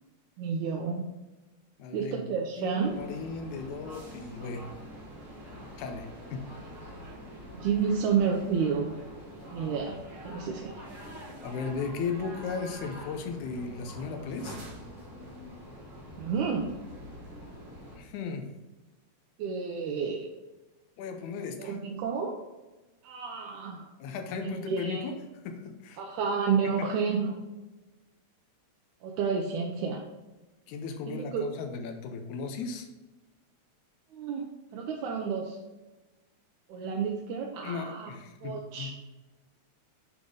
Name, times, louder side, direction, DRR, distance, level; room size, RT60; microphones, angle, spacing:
voice 1, 0.4-1.1 1.9-3.0 7.5-8.9 9.5-10.0 10.2-10.7 16.2-16.6 19.4-20.3 21.6-22.4 23.0-23.9 24.4-25.1 26.0-27.3 29.0-30.0 31.1-31.4 34.1-34.4 34.7-35.6 36.7-38.1 38.4-39.0, right 6 dB, 85° right, 1 dB, 2.2 m, -30 dB
voice 2, 1.8-4.7 5.8-6.4 11.4-14.6 18.0-18.5 21.0-21.8 24.0-25.1 25.5-26.0 26.8-26.9 30.7-32.9 37.6-38.9, left 5 dB, 85° left, 5 dB, 2.2 m, -36 dB
sound 1, 2.8-18.0, equal, 40° right, 2.2 m, -45 dB
7.4 x 5.2 x 3.8 m, 1.1 s
omnidirectional pair, 3.3 m